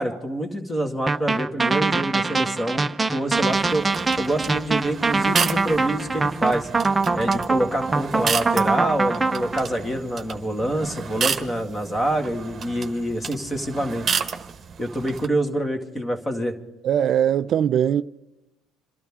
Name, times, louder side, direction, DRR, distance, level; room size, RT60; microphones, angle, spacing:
voice 1, 0.0-3.9 4.2-6.7 7.1-14.1 14.8-16.5, right 1 dB, 15° left, 2.1 m, -26 dB
sound 1, 1.1-9.6, right 3 dB, 15° right, 0.7 m, -23 dB
sound 2, 3.3-15.3, right 6 dB, 35° right, 1.2 m, -32 dB
voice 2, 16.8-18.0, right 9 dB, 50° right, 0.4 m, -20 dB
28.0 x 12.0 x 3.7 m
cardioid pair, 115°, 0 cm